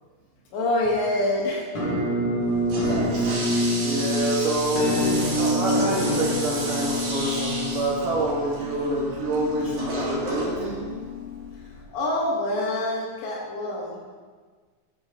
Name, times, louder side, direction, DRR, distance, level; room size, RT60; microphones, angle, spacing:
voice 1, 0.5-1.9 11.7-14.0, left 1 dB, 70° left, -3 dB, 3.8 m, -26 dB
Musical instrument, 1.7-11.5, equal, 45° left, 1.5 m, -27 dB
Toilet flush, 2.4-11.8, right 2 dB, 45° right, 3.7 m, -33 dB
voice 2, 3.8-10.9, right 2 dB, 70° right, -3 dB, 2.0 m, -27 dB
11.0 x 8.0 x 5.0 m, 1.5 s
omnidirectional pair, 5.7 m